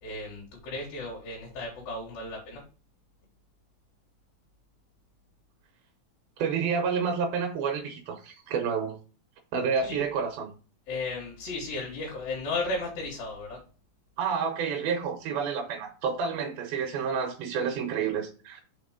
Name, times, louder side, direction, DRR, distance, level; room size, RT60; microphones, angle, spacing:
voice 1, 0.0-2.6 9.8-10.1 10.9-13.6, left 2 dB, 75° left, 3.4 m, -34 dB
voice 2, 6.4-9.0 9.5-10.5 14.2-18.6, right 6 dB, 85° right, 2.8 m, -29 dB
6.1 x 4.3 x 5.0 m
omnidirectional pair, 4.2 m